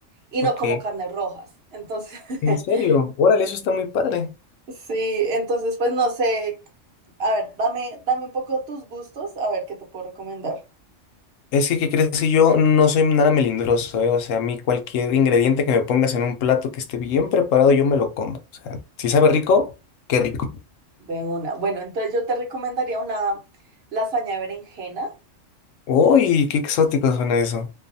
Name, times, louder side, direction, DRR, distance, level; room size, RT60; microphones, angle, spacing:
voice 1, 0.3-1.5 1.7-2.9 4.9-6.5 7.2-9.6 9.9-10.6 21.0-23.4 23.9-25.1, right 2 dB, 60° right, 1.0 m, -26 dB
voice 2, 2.4-4.3 11.5-18.4 18.6-19.7 20.1-20.5 25.9-27.7, left 6 dB, 90° left, 1.0 m, -19 dB
2.6 x 2.3 x 2.5 m
omnidirectional pair, 1.3 m